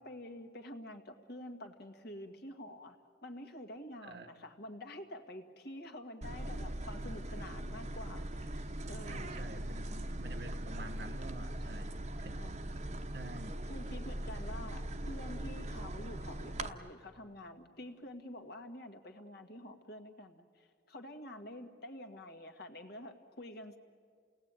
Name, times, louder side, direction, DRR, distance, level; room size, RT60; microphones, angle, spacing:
voice 1, 0.0-3.0 3.2-9.4 12.3-12.9 13.6-23.8, left 1 dB, 65° left, 5 dB, 1.8 m, -48 dB
sound 1, 6.2-16.7, right 1 dB, 40° right, 1.0 m, -40 dB
voice 2, 9.1-11.9 12.2-12.7 13.1-13.6, right 2 dB, 65° right, 7 dB, 1.3 m, -49 dB
29.0 x 18.5 x 8.9 m, 2.1 s
head